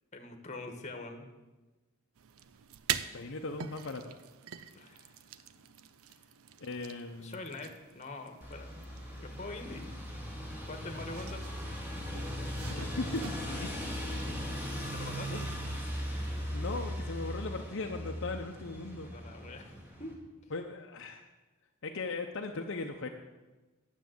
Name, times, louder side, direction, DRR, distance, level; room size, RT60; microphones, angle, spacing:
voice 1, 0.1-1.3 4.7-5.2 7.2-8.7 9.2-9.9 10.6-11.4 14.8-15.4 19.0-19.7 20.0-20.1, left 2 dB, 35° left, 5 dB, 1.3 m, -44 dB
sound 1, 2.2-13.3, right 9 dB, 80° right, 0.5 m, -44 dB
voice 2, 3.1-4.2 6.6-7.4 12.6-14.0 15.3-15.4 16.5-19.1 20.5-21.2 21.8-23.1, left 3 dB, 60° left, 3 dB, 0.7 m, -38 dB
sound 2, 8.4-20.1, equal, 10° right, 2.0 m, -38 dB
9.4 x 7.4 x 7.7 m, 1.2 s
head